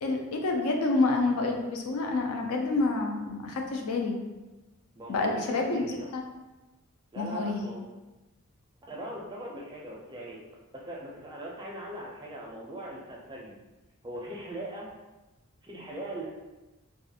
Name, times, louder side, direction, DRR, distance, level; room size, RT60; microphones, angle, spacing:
voice 1, 0.0-4.2 5.1-6.2 7.2-7.6, left 3 dB, 75° left, 2 dB, 0.4 m, -28 dB
voice 2, 5.0-6.1 7.1-7.8 8.9-10.4 10.8-13.5 14.0-14.9 15.6-16.3, right 1 dB, 20° right, -3 dB, 0.4 m, -40 dB
2.4 x 2.3 x 2.7 m, 1.1 s
head